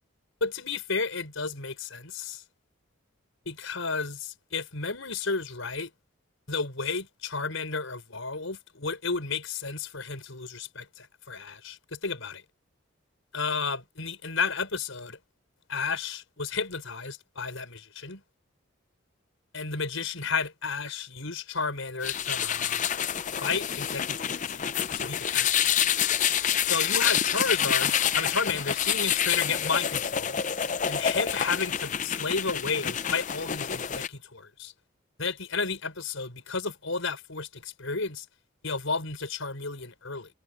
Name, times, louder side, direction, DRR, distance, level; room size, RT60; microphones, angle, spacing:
voice 1, 0.4-2.4 3.4-5.9 6.5-12.4 13.3-15.2 15.7-18.2 19.5-22.8 23.4-25.6 26.6-30.4 30.9-34.7 35.2-38.2 38.6-40.3, left 4 dB, 75° left, 4.9 m, -32 dB
sound 1, 22.0-34.1, left 9 dB, 35° left, 0.5 m, -27 dB
head